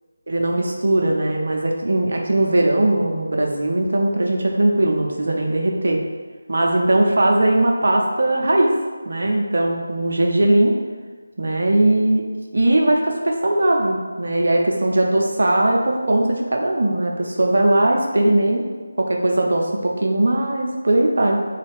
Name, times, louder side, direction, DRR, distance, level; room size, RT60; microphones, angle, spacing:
voice 1, 0.3-6.0 6.5-8.7 9.1-10.7 11.4-12.2 12.5-18.6 19.0-21.4, right 1 dB, 60° right, 0 dB, 0.5 m, -19 dB
3.0 x 2.3 x 3.4 m, 1.4 s
figure-of-eight pair, 160°, 0 cm